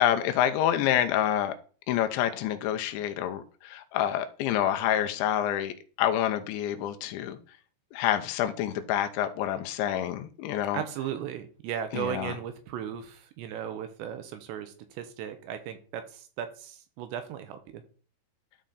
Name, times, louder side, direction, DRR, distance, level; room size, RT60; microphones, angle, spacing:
voice 1, 0.0-1.5 1.9-7.4 7.9-10.8 11.9-12.4, left 11 dB, 80° left, 8 dB, 3.0 m, -27 dB
voice 2, 10.7-17.8, right 9 dB, 80° right, 8 dB, 2.9 m, -36 dB
13.0 x 4.3 x 3.9 m, 0.40 s
omnidirectional pair, 5.4 m